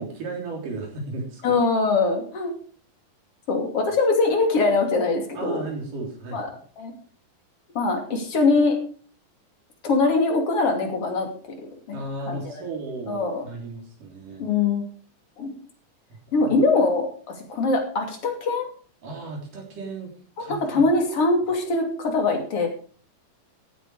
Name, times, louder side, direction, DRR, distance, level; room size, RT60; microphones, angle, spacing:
voice 1, 0.0-1.5 5.3-6.6 11.9-14.5 16.4-16.6 19.0-20.6, right 3 dB, 70° right, 0 dB, 5.1 m, -35 dB
voice 2, 1.4-2.5 3.5-5.6 6.3-6.5 6.8-6.9 7.8-8.8 9.8-11.3 11.9-12.0 12.3-12.6 13.1-13.4 14.4-14.9 15.4-15.5 16.3-18.7 20.4-22.7, left 3 dB, 45° left, 3 dB, 3.6 m, -22 dB
15.5 x 9.1 x 4.9 m, 0.43 s
omnidirectional pair, 3.9 m